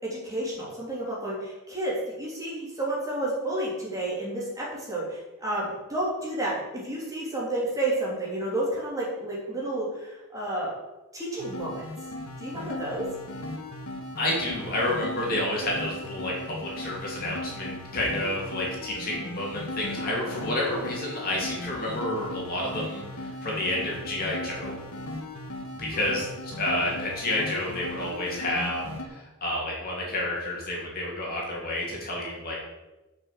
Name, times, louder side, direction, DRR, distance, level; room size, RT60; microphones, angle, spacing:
voice 1, 0.0-10.7 11.1-11.9 12.4-13.0, right 1 dB, 15° right, -6 dB, 3.1 m, -31 dB
sound 1, 11.4-29.0, left 1 dB, 75° left, 1.5 m, -37 dB
voice 2, 14.2-24.7 25.8-32.6, left 1 dB, 40° left, -4 dB, 2.9 m, -30 dB
7.3 x 6.1 x 7.6 m, 1.1 s
head